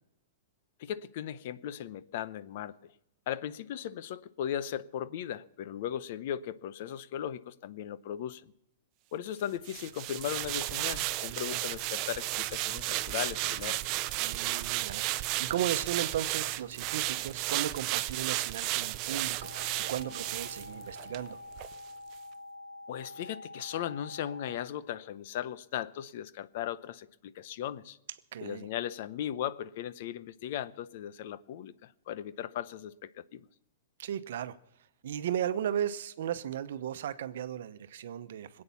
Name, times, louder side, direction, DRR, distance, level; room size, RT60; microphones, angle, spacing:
voice 1, 0.8-2.9 3.3-8.5 9.1-13.8 22.9-28.0 28.4-33.4, left 10 dB, 55° left, 0.7 m, -37 dB
sound 1, 9.7-21.2 21.6-21.7, right 17 dB, 40° right, 0.6 m, -33 dB
voice 2, 14.2-21.4 28.3-28.7 34.0-34.6 35.0-38.6, right 10 dB, 70° right, 0.9 m, -35 dB
sound 2, 19.4-24.6, left 2 dB, 10° left, 1.3 m, -46 dB
21.0 x 8.7 x 7.1 m
hypercardioid pair, 140°, 0 cm